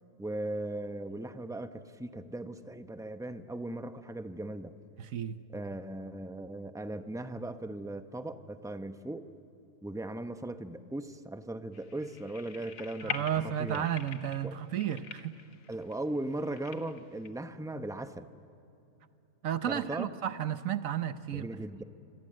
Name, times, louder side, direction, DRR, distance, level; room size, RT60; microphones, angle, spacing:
voice 1, 0.2-4.7 5.5-9.3 9.8-13.9 14.4-14.5 15.7-18.3 19.6-20.1 21.3-21.8, right 1 dB, 5° right, 8 dB, 0.4 m, -38 dB
voice 2, 5.0-5.4 13.0-15.3 19.4-21.5, right 10 dB, 65° right, 12 dB, 1.2 m, -33 dB
sound 1, 11.7-17.3, left 6 dB, 60° left, 1.4 m, -44 dB
26.5 x 26.0 x 7.6 m, 2.7 s
omnidirectional pair, 1.6 m